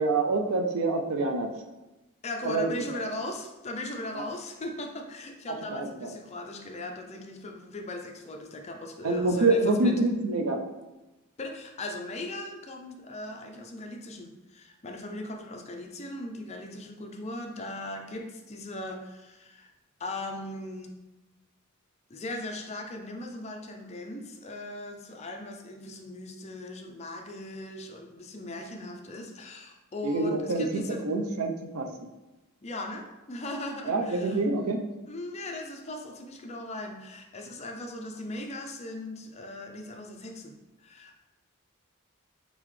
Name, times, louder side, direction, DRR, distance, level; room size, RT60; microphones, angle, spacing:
voice 1, 0.0-1.5 2.4-2.7 4.1-4.2 5.7-6.1 9.0-10.6 30.0-31.9 33.9-34.8, right 2 dB, 85° right, 5 dB, 0.5 m, -26 dB
voice 2, 2.2-9.9 11.4-19.7 20.0-20.9 22.1-31.1 31.4-31.5 32.6-34.4 35.1-41.2, left 2 dB, 30° left, 3 dB, 0.4 m, -38 dB
3.8 x 3.7 x 3.2 m, 1.1 s
head